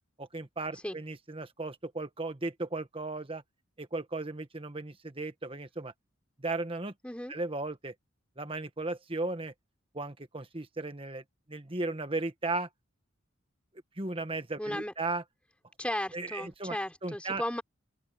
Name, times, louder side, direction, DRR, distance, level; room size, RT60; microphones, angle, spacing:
voice 1, 0.2-3.4 3.8-5.9 6.4-6.9 7.3-7.9 8.4-9.5 9.9-11.2 11.5-12.7 14.0-15.2 16.1-16.8 17.0-17.4, right 2 dB, 25° right, 1.5 m, -36 dB
voice 2, 14.6-14.9 15.8-17.6, left 1 dB, 5° left, 3.8 m, -35 dB
open air
head